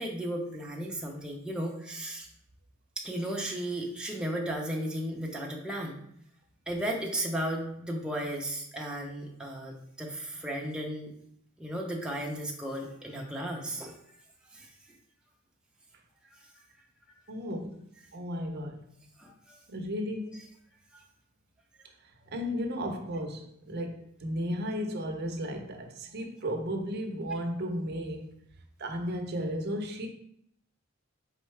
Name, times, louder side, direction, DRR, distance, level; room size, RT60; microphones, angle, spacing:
voice 1, 0.0-2.3 3.0-6.0 6.7-11.1 11.6-13.9 14.5-14.7 19.2-19.6 20.9-21.0, right 1 dB, 5° right, 0.7 m, -35 dB
voice 2, 17.3-17.8 18.1-18.8 19.7-20.4 22.3-28.3 28.8-30.1, equal, 50° right, 0.7 m, -34 dB
4.5 x 3.6 x 3.2 m
head